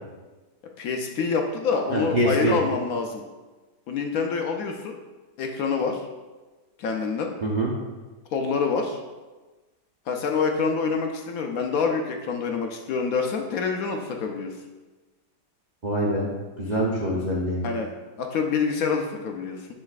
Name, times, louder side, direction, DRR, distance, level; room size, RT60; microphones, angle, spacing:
voice 1, 0.8-3.2 3.9-4.9 5.4-6.0 6.8-7.3 8.3-9.0 10.1-14.5 17.6-17.9 18.2-19.7, left 5 dB, 65° left, 3 dB, 0.9 m, -26 dB
voice 2, 1.9-2.5 7.4-7.7 15.8-16.3 16.6-17.6, right 1 dB, 50° right, -4 dB, 0.5 m, -24 dB
9.7 x 4.0 x 2.4 m, 1.2 s
omnidirectional pair, 1.8 m